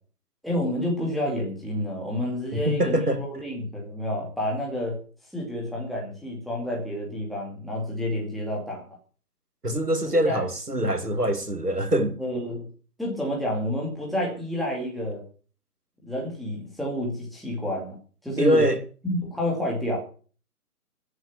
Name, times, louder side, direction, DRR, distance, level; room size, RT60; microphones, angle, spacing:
voice 1, 0.4-5.0 5.3-8.9 10.2-10.4 12.2-12.6 13.0-15.2 16.0-18.0 18.2-18.7 19.0-20.0, left 1 dB, ahead, 2.3 m, -29 dB
voice 2, 2.5-3.2 9.6-12.2 18.4-18.8, equal, 90° right, 2.1 m, -24 dB
13.5 x 7.9 x 7.0 m
figure-of-eight pair, 145°, 45 cm